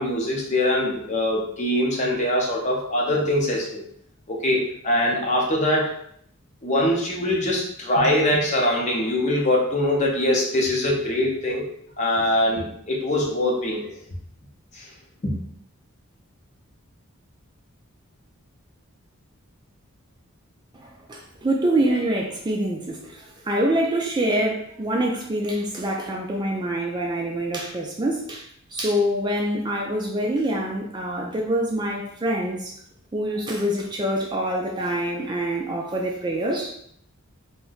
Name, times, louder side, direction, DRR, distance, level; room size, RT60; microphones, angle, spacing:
voice 1, 0.0-3.8 4.3-5.9 6.6-11.7 12.0-14.0 14.7-14.9 15.2-15.3, left 1 dB, 35° left, -2 dB, 0.6 m, -23 dB
voice 2, 20.8-28.4 28.7-32.7 33.1-36.7, right 1 dB, 20° right, -1 dB, 0.3 m, -25 dB
2.6 x 2.1 x 3.8 m, 0.67 s
head